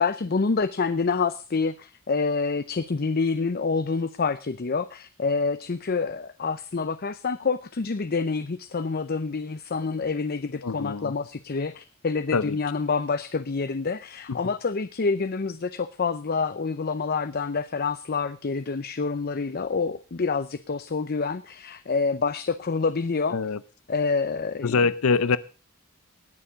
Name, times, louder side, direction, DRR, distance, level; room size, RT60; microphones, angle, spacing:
voice 1, 0.0-23.4 23.9-24.8, left 4 dB, 45° left, 13 dB, 0.6 m, -27 dB
voice 2, 10.6-11.1 12.3-12.6 14.3-14.4 23.3-23.6 24.6-25.4, left 4 dB, 80° left, 17 dB, 0.6 m, -24 dB
19.5 x 7.1 x 4.9 m, 0.35 s
head